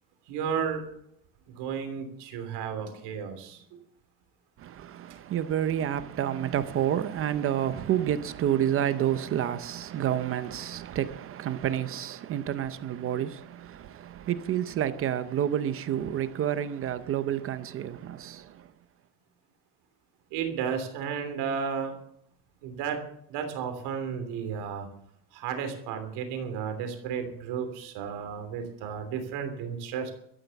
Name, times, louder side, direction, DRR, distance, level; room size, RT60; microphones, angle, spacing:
voice 1, 0.3-0.8 1.5-3.6 20.3-21.9 22.6-23.0 23.3-24.9 25.3-30.1, right 7 dB, 65° right, 3.2 m, -33 dB
voice 2, 4.6-18.7, right 10 dB, 30° right, 0.6 m, -29 dB
13.0 x 11.5 x 7.0 m
cardioid pair, 175°, 42 cm